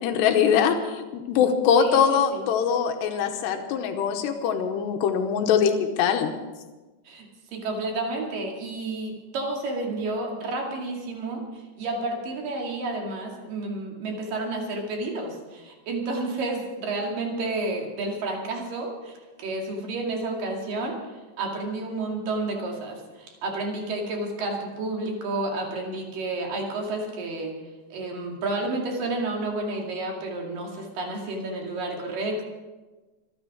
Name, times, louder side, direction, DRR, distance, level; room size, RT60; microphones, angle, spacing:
voice 1, 0.0-6.3, left 7 dB, 90° left, 5 dB, 3.2 m, -22 dB
voice 2, 1.8-2.4 7.1-21.0 21.4-27.5 27.9-32.5, right 2 dB, 60° right, 0 dB, 3.8 m, -31 dB
26.0 x 9.7 x 5.0 m, 1.2 s
omnidirectional pair, 4.8 m